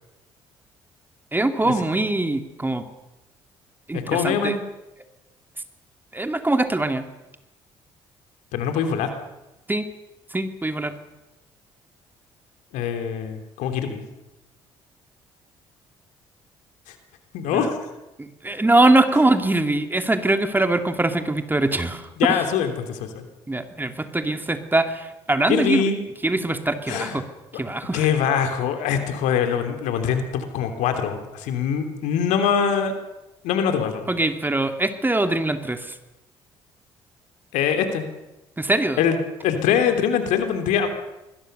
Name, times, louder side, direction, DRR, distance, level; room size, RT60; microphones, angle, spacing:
voice 1, 1.3-2.8 3.9-4.5 6.1-7.1 9.7-9.9 10.3-11.0 17.5-17.7 18.2-22.4 23.5-25.8 26.2-27.2 27.5-28.1 34.1-36.0 38.6-39.0, right 2 dB, 15° right, 7 dB, 2.8 m, -22 dB
voice 2, 3.9-4.6 8.5-9.1 12.7-14.0 16.9-17.0 17.3-17.8 19.1-19.2 22.2-23.3 25.5-26.0 26.9-27.2 27.9-32.9 33.4-34.1 37.5-38.0 39.0-40.9, left 7 dB, 70° left, 6 dB, 3.2 m, -23 dB
26.0 x 21.5 x 6.8 m, 0.99 s
hypercardioid pair, 50°, 13 cm